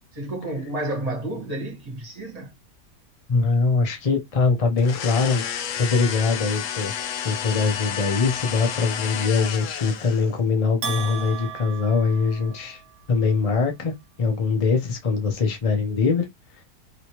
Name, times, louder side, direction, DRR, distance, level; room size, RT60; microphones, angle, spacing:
voice 1, 0.1-2.5, right 1 dB, 25° right, 1.5 m, -30 dB
voice 2, 3.3-5.4 5.8-6.9 7.2-12.8 13.1-16.3, left 4 dB, 45° left, 0.4 m, -22 dB
sound 1, 4.8-10.4, left 9 dB, 70° left, 0.8 m, -31 dB
Bell, 10.8-13.0, right 7 dB, 65° right, 1.2 m, -35 dB
3.0 x 3.0 x 2.9 m
omnidirectional pair, 1.7 m